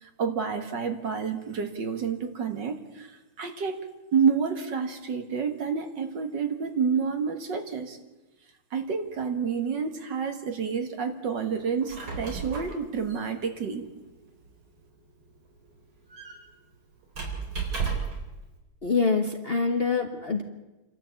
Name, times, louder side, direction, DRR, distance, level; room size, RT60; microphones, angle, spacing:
voice 1, 0.0-3.8 4.1-8.0 8.7-13.9, right 6 dB, 60° right, 6 dB, 2.3 m, -29 dB
Squeak, 11.7-18.3, right 5 dB, 85° right, 4.9 m, -36 dB
voice 2, 18.8-20.4, left 4 dB, 35° left, 4 dB, 1.2 m, -25 dB
28.0 x 13.0 x 8.3 m, 1.1 s
omnidirectional pair, 2.2 m